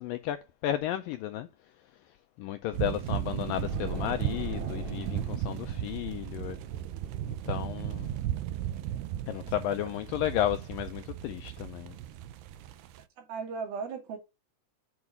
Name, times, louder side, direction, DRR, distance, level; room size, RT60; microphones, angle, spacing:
voice 1, 0.0-6.6 7.2-8.1 9.3-12.0, left 12 dB, 90° left, 2.0 m, -33 dB
sound 1, 2.7-13.0, right 12 dB, 85° right, 2.7 m, -36 dB
sound 2, 3.5-8.4, right 2 dB, 50° right, 2.8 m, -40 dB
voice 2, 13.2-14.2, right 5 dB, 70° right, 3.8 m, -37 dB
7.9 x 4.8 x 5.4 m
omnidirectional pair, 4.6 m